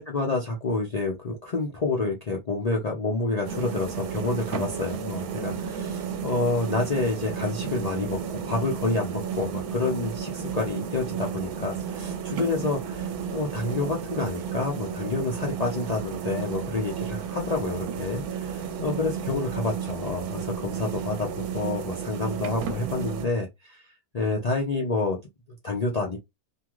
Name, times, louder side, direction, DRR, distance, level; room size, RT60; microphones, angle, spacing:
voice 1, 0.0-21.3 21.5-23.9 24.1-25.2 25.6-26.2, left 3 dB, 60° left, 0.4 m, -28 dB
sound 1, 3.4-23.3, right 7 dB, 75° right, 1.1 m, -33 dB
2.7 x 2.4 x 2.9 m
omnidirectional pair, 1.6 m